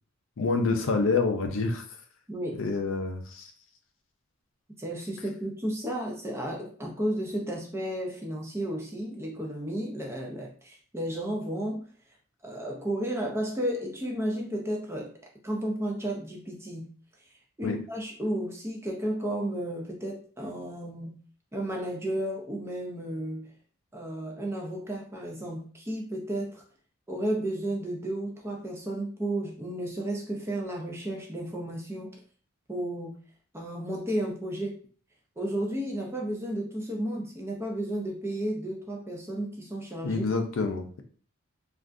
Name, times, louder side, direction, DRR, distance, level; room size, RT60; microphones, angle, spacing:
voice 1, 0.4-1.8 2.6-3.5 17.6-17.8 40.0-41.0, left 3 dB, 60° left, 6 dB, 0.4 m, -27 dB
voice 2, 2.3-2.6 4.8-11.8 12.4-15.1 15.4-16.9 17.2-21.2 21.5-23.5 23.9-26.6 27.1-32.2 32.7-33.2 33.5-34.8 35.4-40.2, right 1 dB, 10° right, 0 dB, 0.5 m, -33 dB
3.4 x 2.4 x 2.5 m, 0.43 s
head